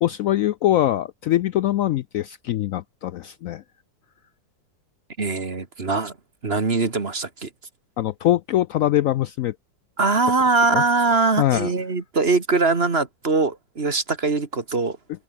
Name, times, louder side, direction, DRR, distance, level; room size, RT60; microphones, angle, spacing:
voice 1, 0.0-3.6 8.0-9.5 10.7-10.8 11.4-11.7, left 13 dB, 90° left, 0.7 m, -22 dB
voice 2, 5.2-6.1 6.4-7.5 10.0-15.0, right 3 dB, 35° right, 2.1 m, -22 dB
omnidirectional pair, 2.0 m